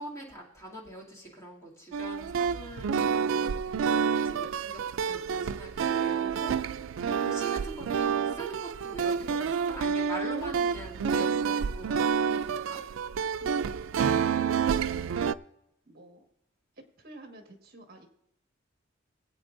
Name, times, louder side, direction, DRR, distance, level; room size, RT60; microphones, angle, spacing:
voice 1, 0.0-12.8, right 1 dB, 15° left, -4 dB, 2.7 m, -43 dB
sound 1, 1.9-15.3, right 6 dB, 90° right, 0.4 m, -29 dB
voice 2, 13.4-13.7 14.6-15.2 15.8-16.2 16.8-18.1, right 2 dB, 50° right, 4 dB, 1.6 m, -50 dB
21.0 x 8.6 x 2.6 m, 0.79 s
head